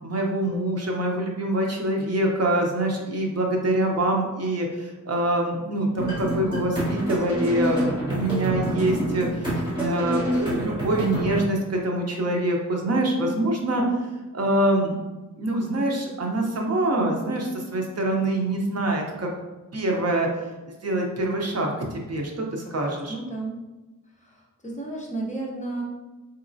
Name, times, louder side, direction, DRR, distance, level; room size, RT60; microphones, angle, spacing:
voice 1, 0.0-13.8 14.3-15.0 15.4-19.3 19.7-20.3 20.8-23.1, right 1 dB, 50° right, 0 dB, 0.6 m, -25 dB
sound 1, 6.0-11.4, right 1 dB, 15° right, 1.3 m, -27 dB
voice 2, 22.8-23.6 24.2-24.4 24.6-25.8, right 2 dB, 20° left, -3 dB, 0.6 m, -33 dB
3.9 x 3.1 x 2.6 m, 1.1 s
wide cardioid pair, 165°, 33 cm